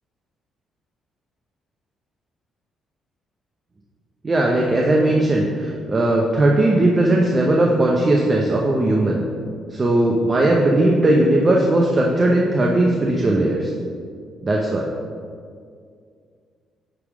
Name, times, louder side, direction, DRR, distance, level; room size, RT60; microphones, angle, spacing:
voice 1, 4.2-9.2 9.7-13.7 14.4-14.9, right 1 dB, 30° right, -1 dB, 0.8 m, -18 dB
9.9 x 3.6 x 4.9 m, 2.2 s
cardioid pair, 90°, 0 cm